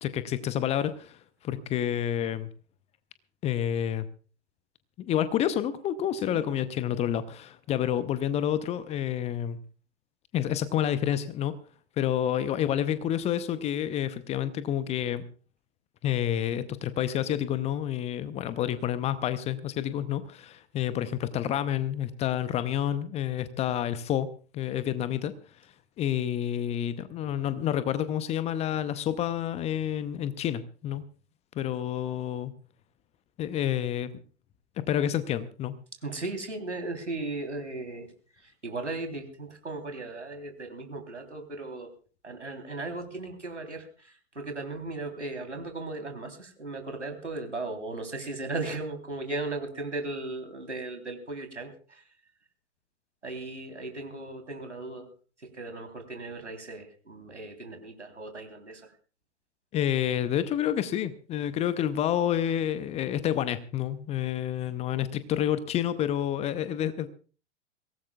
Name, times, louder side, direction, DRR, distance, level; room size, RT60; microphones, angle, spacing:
voice 1, 0.0-2.5 3.4-4.0 5.0-9.6 10.3-11.5 12.0-15.2 16.0-24.3 24.5-25.3 26.0-31.0 31.5-32.5 33.4-34.1 34.9-35.7 59.7-67.1, left 10 dB, 20° left, 14 dB, 0.7 m, -29 dB
voice 2, 36.0-41.9 42.2-52.0 53.2-55.1 55.4-58.9, right 2 dB, 80° right, 5 dB, 3.5 m, -37 dB
23.0 x 18.0 x 2.3 m, 0.38 s
figure-of-eight pair, 105°, 35 cm